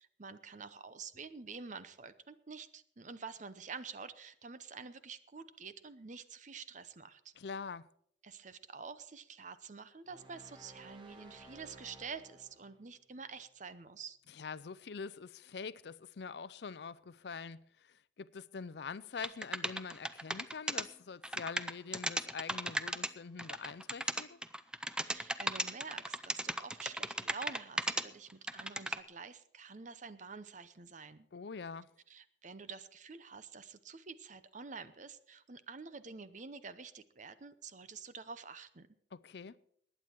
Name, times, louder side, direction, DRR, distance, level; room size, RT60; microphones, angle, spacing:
voice 1, 0.2-7.3 8.2-14.2 25.1-31.3 32.1-38.9, right 5 dB, 45° right, 0.8 m, -48 dB
voice 2, 7.4-7.9 14.3-24.4 31.3-31.9 39.1-39.6, left 5 dB, 65° left, 0.5 m, -45 dB
sound 1, 10.1-12.8, right 2 dB, 30° right, 1.8 m, -56 dB
sound 2, 19.2-20.8 21.2-23.1 23.4-28.0 28.3-29.0, right 1 dB, 5° right, 0.5 m, -35 dB
20.0 x 9.1 x 4.5 m
head